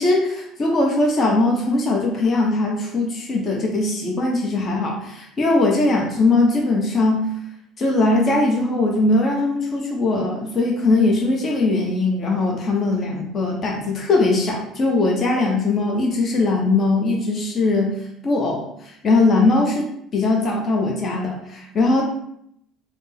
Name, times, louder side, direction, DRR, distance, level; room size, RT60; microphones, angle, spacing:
voice 1, 0.0-7.2 7.8-18.0 18.2-22.0, left 2 dB, 40° left, 0 dB, 0.8 m, -20 dB
3.4 x 2.0 x 4.1 m, 0.74 s
hypercardioid pair, 70°, 0 cm